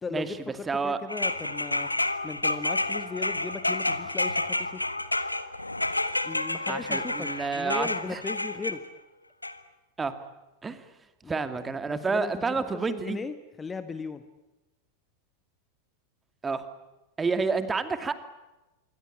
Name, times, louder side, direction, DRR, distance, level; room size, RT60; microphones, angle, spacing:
voice 1, 0.0-1.9 2.2-4.9 6.2-8.8 11.2-14.2, left 5 dB, 15° left, 11 dB, 1.5 m, -37 dB
voice 2, 0.7-1.0 6.7-8.2 10.0-10.1 10.6-10.8 11.3-13.2 16.4-16.6 17.2-18.1, right 4 dB, 15° right, 10 dB, 2.4 m, -29 dB
sound 1, 1.1-8.8 9.4-9.5, left 2 dB, 85° left, 1.4 m, -29 dB
26.5 x 24.0 x 8.7 m, 1.0 s
figure-of-eight pair, 90°, 0 cm